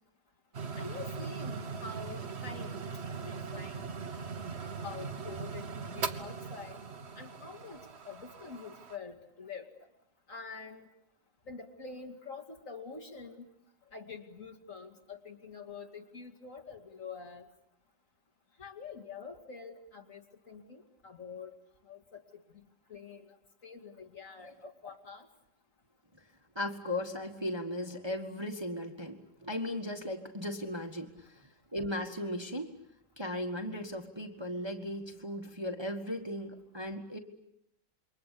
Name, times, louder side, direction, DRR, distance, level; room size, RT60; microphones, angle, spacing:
sound 1, 0.5-9.0, right 5 dB, 40° right, 1.3 m, -40 dB
voice 1, 0.8-2.7 3.1-3.9 4.5-6.8 7.2-9.7 10.3-10.8 11.5-13.5 13.9-17.4 18.6-21.5 21.8-22.4 22.9-23.3 23.6-25.3, left 5 dB, 45° left, 4 dB, 2.8 m, -46 dB
voice 2, 26.5-32.7 33.2-37.2, left 1 dB, 15° right, 4 dB, 1.5 m, -37 dB
28.0 x 23.0 x 8.5 m, 0.80 s
omnidirectional pair, 1.9 m